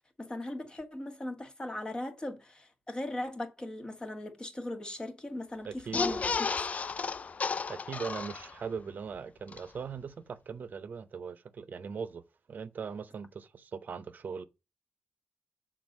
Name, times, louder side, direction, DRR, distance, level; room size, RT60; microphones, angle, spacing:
voice 1, 0.2-6.2, left 1 dB, 25° left, 1.4 m, -38 dB
voice 2, 5.6-6.2 7.7-12.2 12.5-14.4, right 6 dB, 65° right, 0.7 m, -40 dB
sound 1, 5.8-8.8 9.2-9.3 9.5-9.6, left 5 dB, 45° left, 0.3 m, -33 dB
6.4 x 3.9 x 5.2 m
cardioid pair, 90°, 3 cm